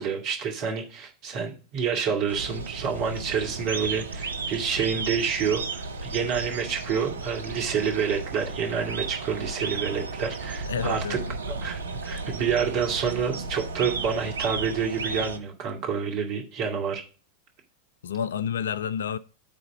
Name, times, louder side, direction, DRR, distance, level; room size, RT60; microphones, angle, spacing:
voice 1, 0.0-11.2 11.5-17.0, right 6 dB, 40° right, 2.3 m, -28 dB
sound 1, 2.3-15.4, right 4 dB, 75° right, 0.7 m, -34 dB
voice 2, 10.7-11.3 18.0-19.2, left 8 dB, 65° left, 0.4 m, -29 dB
9.3 x 4.0 x 5.3 m
figure-of-eight pair, 90°, 0 cm